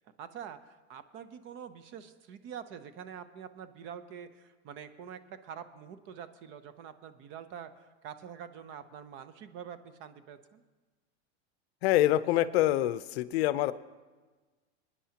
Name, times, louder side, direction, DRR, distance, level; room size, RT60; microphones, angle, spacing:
voice 1, 0.2-10.6, right 8 dB, 35° right, 11 dB, 0.6 m, -46 dB
voice 2, 11.8-13.7, left 14 dB, 65° left, 15 dB, 0.6 m, -26 dB
24.5 x 9.8 x 2.9 m, 1.3 s
supercardioid pair, 155°, 34 cm